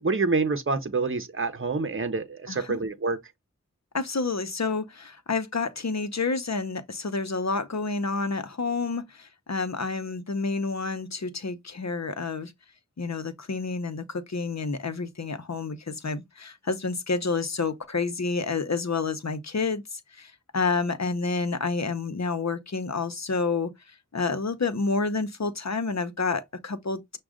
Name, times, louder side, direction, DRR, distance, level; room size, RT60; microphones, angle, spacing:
voice 1, 0.0-3.2, right 3 dB, 45° right, 0.8 m, -27 dB
voice 2, 2.5-2.8 3.9-12.5 13.0-23.7 24.1-27.2, left 4 dB, 60° left, 0.8 m, -29 dB
6.1 x 2.3 x 3.6 m
wide cardioid pair, 40°, 30 cm